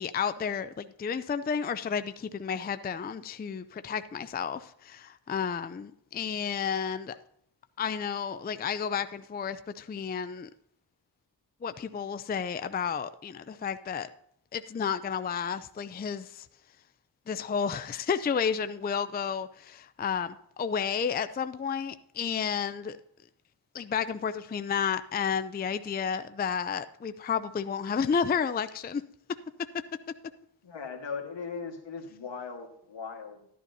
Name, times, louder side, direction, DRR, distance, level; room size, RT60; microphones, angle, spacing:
voice 1, 0.0-7.2 7.8-10.5 11.6-14.1 14.5-16.5 17.3-23.0 23.7-29.0, left 7 dB, 25° left, 0.4 m, -31 dB
voice 2, 30.6-33.5, left 5 dB, 75° left, 1.6 m, -39 dB
11.5 x 11.0 x 2.7 m
wide cardioid pair, 75°, 45 cm